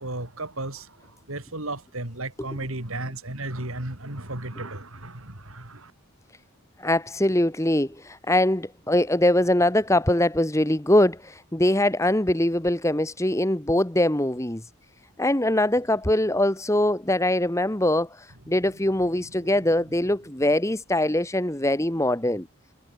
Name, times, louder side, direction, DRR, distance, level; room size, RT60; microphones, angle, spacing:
voice 1, 0.0-5.9 19.3-19.5, right 2 dB, 70° right, 3.9 m, -34 dB
voice 2, 6.8-14.6 15.2-22.5, left 1 dB, 15° left, 1.3 m, -22 dB
head